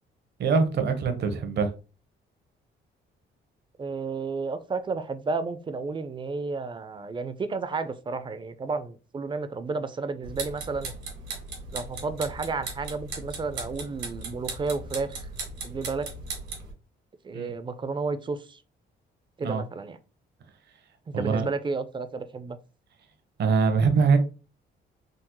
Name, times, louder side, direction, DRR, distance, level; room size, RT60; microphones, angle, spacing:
voice 1, 0.4-1.7 17.3-17.5 19.4-19.6 21.1-21.5 23.4-24.2, right 5 dB, 60° right, 0.7 m, -23 dB
voice 2, 3.8-10.9 11.7-15.2 15.6-16.1 17.2-18.6 19.4-20.0 21.1-22.6, right 4 dB, 25° right, 0.4 m, -32 dB
sound 1, 10.2-16.7, right 3 dB, 80° right, 1.3 m, -37 dB
3.7 x 2.0 x 2.9 m
cardioid pair, 90°, 20 cm